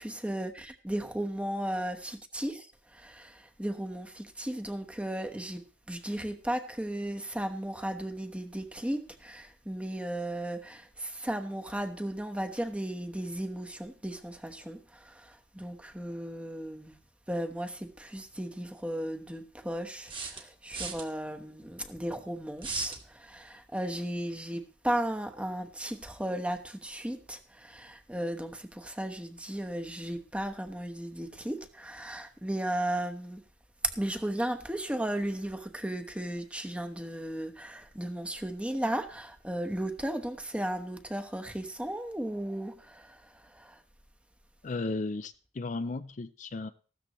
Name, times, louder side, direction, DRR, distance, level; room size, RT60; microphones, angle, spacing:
voice 1, 0.0-17.0 17.3-33.4 33.8-43.8, right 1 dB, 5° right, 1.1 m, -35 dB
sound 1, 18.0-18.1 20.1-21.1 22.6-23.0, right 5 dB, 30° right, 1.7 m, -37 dB
voice 2, 44.6-46.7, left 3 dB, 45° left, 0.5 m, -35 dB
15.5 x 13.0 x 3.1 m
head